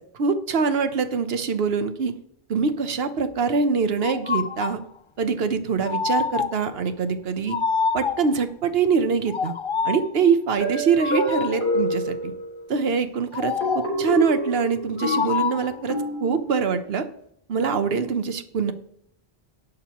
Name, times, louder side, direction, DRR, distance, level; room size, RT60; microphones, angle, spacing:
voice 1, 0.2-2.2 2.5-4.8 5.2-7.6 7.9-9.5 9.8-12.3 12.7-17.1 17.5-18.7, right 5 dB, 75° right, 10 dB, 1.1 m, -24 dB
sound 1, 4.0-4.9 5.8-6.7 7.5-8.4 9.3-10.1 11.0-11.7 13.3-14.1 15.0-15.8, left 5 dB, 50° left, 0.3 m, -26 dB
sound 2, 10.6-12.8 13.6-16.7, equal, 90° left, 3.9 m, -28 dB
18.0 x 6.5 x 3.0 m, 0.74 s
omnidirectional pair, 1.0 m